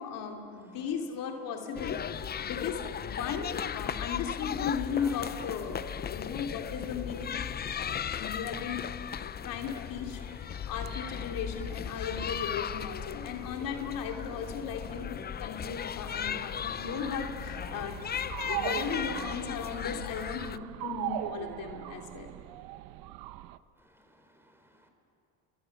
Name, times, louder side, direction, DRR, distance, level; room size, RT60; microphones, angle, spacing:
voice 1, 0.0-2.0 2.4-7.4 7.7-8.9 9.2-10.2 10.6-18.0 18.4-22.3, left 7 dB, 65° left, 2 dB, 2.9 m, -36 dB
sound 1, 1.8-20.6, left 8 dB, 30° left, 0.6 m, -37 dB
voice 2, 4.8-5.2 9.3-9.5 10.6-10.7 23.9-24.9, equal, 5° right, 5 dB, 4.4 m, -53 dB
sound 2, 16.9-23.6, right 15 dB, 75° right, 0.9 m, -39 dB
28.5 x 23.5 x 7.3 m, 2.6 s
supercardioid pair, 90°, 36 cm